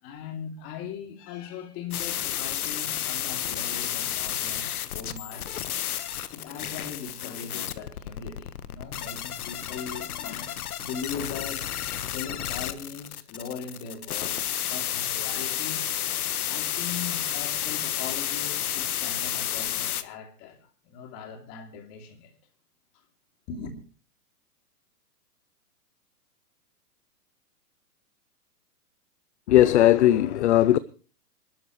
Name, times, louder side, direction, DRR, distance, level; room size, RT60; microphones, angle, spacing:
voice 1, 0.0-5.5 6.3-11.8 12.1-15.9 16.5-22.3 23.5-23.7, left 6 dB, 30° left, 2.9 m, -39 dB
sound 1, 1.9-20.0, left 11 dB, 65° left, 1.4 m, -31 dB
voice 2, 29.5-30.8, left 13 dB, 45° left, 0.7 m, -18 dB
25.5 x 12.5 x 3.1 m
hypercardioid pair, 150°, 47 cm